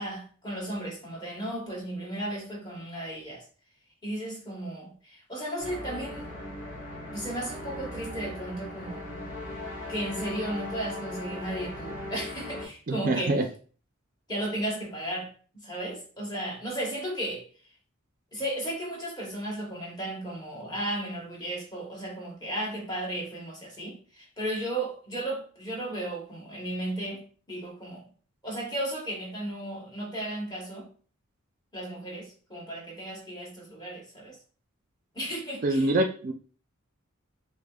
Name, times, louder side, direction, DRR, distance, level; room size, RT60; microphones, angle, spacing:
voice 1, 0.0-3.4 4.0-6.3 7.1-9.1 9.9-13.4 14.3-17.4 18.3-28.1 28.4-30.9 31.7-34.4 35.1-35.9, right 1 dB, 20° left, 1.0 m, -35 dB
sound 1, 5.6-12.7, left 1 dB, 55° left, 1.8 m, -38 dB
voice 2, 12.9-13.5 35.6-36.3, right 2 dB, 40° right, 0.4 m, -25 dB
6.0 x 2.1 x 2.3 m
head